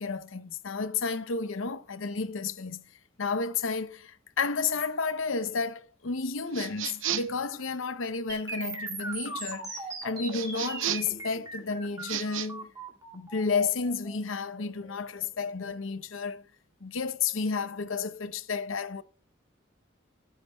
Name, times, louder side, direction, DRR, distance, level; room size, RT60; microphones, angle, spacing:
voice 1, 0.0-2.8 3.2-12.7 13.1-16.4 16.8-19.0, left 4 dB, 85° left, 0.7 m, -32 dB
sound 1, 6.5-7.4 10.3-11.2 12.0-12.5, right 11 dB, 80° right, 0.7 m, -33 dB
sound 2, 8.3-16.3, right 3 dB, 20° right, 1.8 m, -40 dB
12.5 x 8.4 x 2.3 m
head